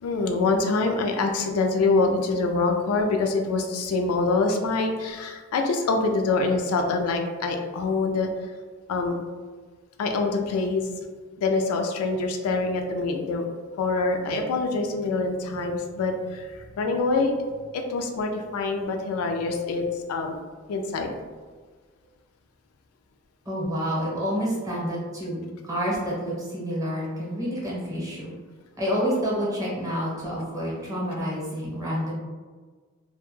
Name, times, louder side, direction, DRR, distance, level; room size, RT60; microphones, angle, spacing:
voice 1, 0.0-8.3 8.9-9.2 10.0-10.9 11.4-13.4 13.8-17.3 17.7-20.4 20.7-21.1, left 3 dB, 85° left, 4 dB, 0.3 m, -25 dB
voice 2, 23.5-28.3 28.8-32.1, equal, 15° right, -5 dB, 0.7 m, -28 dB
2.2 x 2.0 x 3.0 m, 1.5 s
head